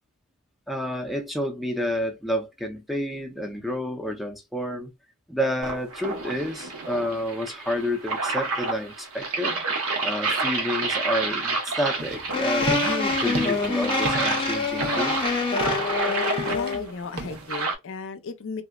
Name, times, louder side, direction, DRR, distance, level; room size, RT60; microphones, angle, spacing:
voice 1, 0.7-4.9 5.3-9.6 10.0-15.2, equal, ahead, 0.6 m, -29 dB
sound 1, 5.6-17.8, right 3 dB, 70° right, 0.9 m, -29 dB
sound 2, 12.0-17.6, right 2 dB, 50° right, 0.6 m, -35 dB
sound 3, 12.3-16.9, left 3 dB, 25° left, 0.8 m, -26 dB
voice 2, 16.1-18.6, left 4 dB, 60° left, 0.5 m, -35 dB
3.4 x 2.0 x 2.2 m
head